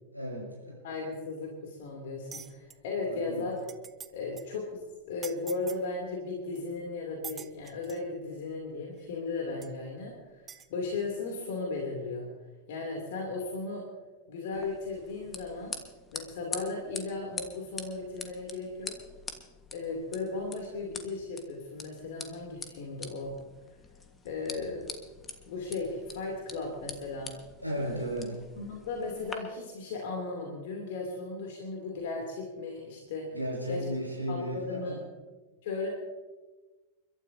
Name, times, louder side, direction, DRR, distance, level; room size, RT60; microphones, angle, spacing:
voice 1, 0.1-0.8 3.0-3.5 27.6-28.4 33.3-35.0, equal, 90° left, -1 dB, 6.0 m, -35 dB
voice 2, 0.8-3.5 4.1-4.8 5.1-12.3 12.7-13.8 14.3-15.7 16.1-18.9 19.7-23.4 24.2-24.9 25.5-27.3 28.6-33.3 33.7-33.8 34.3-35.0 35.6-35.9, left 3 dB, 55° left, -1 dB, 3.0 m, -36 dB
sound 1, 2.3-2.8 3.3-3.4 3.6-4.1 4.4-4.5 5.2-5.8 6.6-6.7 7.2-8.1 9.0-9.1 9.6-9.7 10.5-10.7, right 6 dB, 20° right, 0.7 m, -44 dB
sound 2, 14.5-29.3, left 4 dB, 15° left, 1.5 m, -45 dB
30.0 x 12.5 x 2.8 m, 1.2 s
figure-of-eight pair, 90°, 0 cm